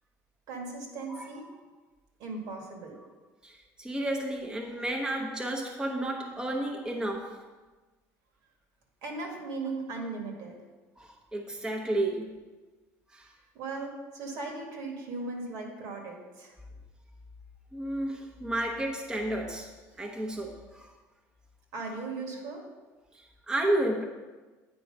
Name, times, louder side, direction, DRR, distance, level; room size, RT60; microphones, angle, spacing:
voice 1, 0.5-1.5 2.2-3.0 9.0-10.6 13.5-16.5 21.7-22.6, right 3 dB, 70° right, 1 dB, 1.9 m, -37 dB
voice 2, 3.4-7.4 11.0-12.4 13.1-13.3 17.7-20.9 23.1-24.0, right 1 dB, 10° right, 0 dB, 0.9 m, -32 dB
8.7 x 4.6 x 5.3 m, 1.3 s
cardioid pair, 115°, 7 cm